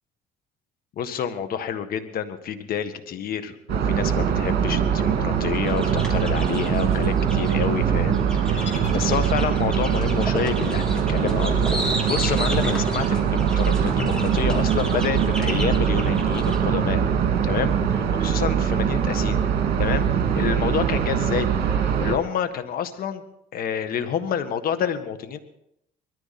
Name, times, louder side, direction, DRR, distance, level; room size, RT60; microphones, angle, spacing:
voice 1, 1.0-11.7 12.1-17.0 17.4-19.4 19.8-23.2 23.5-25.4, left 8 dB, 60° left, 9 dB, 1.6 m, -28 dB
sound 1, 3.7-22.2, right 8 dB, 70° right, 2.4 m, -22 dB
sound 2, 5.7-7.6 8.1-16.6, right 1 dB, 5° left, 3.9 m, -33 dB
sound 3, 8.6-9.9, left 5 dB, 40° left, 2.5 m, -41 dB
21.0 x 14.0 x 4.3 m, 0.77 s
cardioid pair, 110°, 17 cm